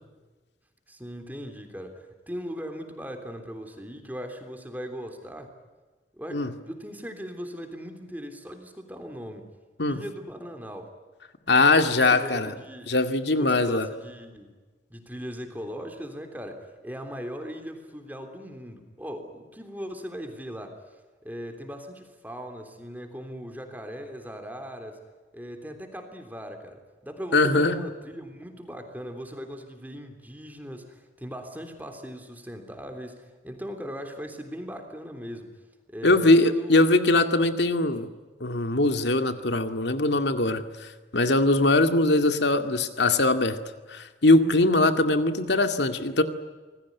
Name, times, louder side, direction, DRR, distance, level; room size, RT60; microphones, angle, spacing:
voice 1, 0.9-5.5 6.1-9.5 9.8-10.9 11.7-12.9 13.4-14.5 14.9-25.0 25.3-35.5 35.9-36.9, equal, 10° right, 5 dB, 3.3 m, -39 dB
voice 2, 11.5-12.5 12.9-13.9 27.3-27.8 36.0-38.1 38.4-43.6 43.9-46.2, left 2 dB, 75° left, 8 dB, 2.2 m, -21 dB
27.0 x 20.0 x 9.6 m, 1.3 s
head